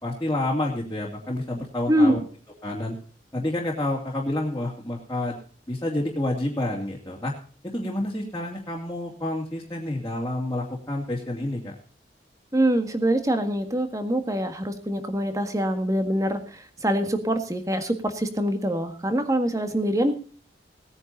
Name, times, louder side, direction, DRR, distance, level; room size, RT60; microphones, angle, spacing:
voice 1, 0.0-2.2 2.6-2.9 3.3-5.4 5.7-7.3 7.6-11.7, left 1 dB, 20° left, -4 dB, 2.7 m, -29 dB
voice 2, 12.5-20.2, right 1 dB, 20° right, 8 dB, 1.7 m, -24 dB
18.5 x 9.8 x 4.1 m, 0.41 s
head